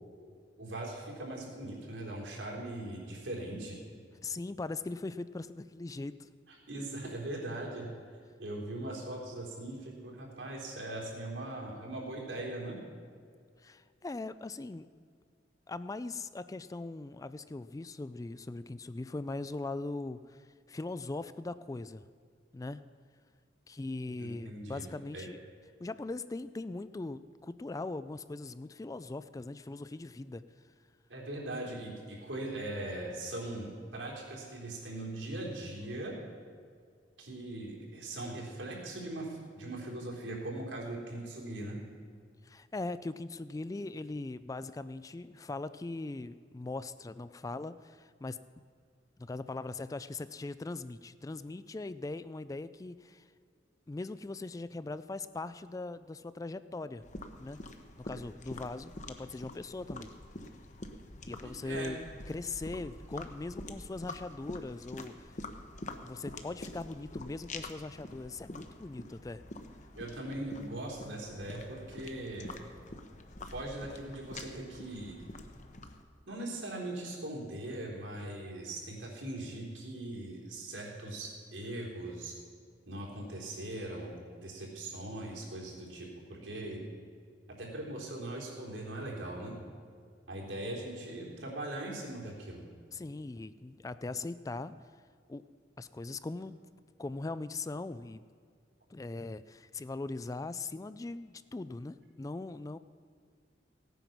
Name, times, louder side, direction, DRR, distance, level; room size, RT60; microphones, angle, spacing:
voice 1, 0.6-3.8 6.5-7.9 8.4-12.8 24.2-24.9 25.1-25.3 31.1-36.2 37.2-41.8 61.4-61.9 70.0-72.6 73.4-75.2 76.3-82.4 82.9-86.8 87.5-89.5 90.3-92.6, right 1 dB, 85° right, -2 dB, 3.6 m, -40 dB
voice 2, 4.2-6.3 13.6-14.9 15.7-22.0 22.5-22.8 23.7-25.4 25.8-30.4 42.4-48.4 49.2-53.3 53.9-57.0 57.4-57.6 58.0-60.1 61.3-62.0 62.3-65.3 66.0-69.4 92.9-94.8 95.3-95.4 95.8-96.6 97.0-98.2 98.9-102.8, left 3 dB, 20° left, 14 dB, 0.3 m, -40 dB
sound 1, 57.0-76.0, left 2 dB, 40° left, 1.0 m, -46 dB
17.0 x 9.2 x 6.0 m, 2.1 s
head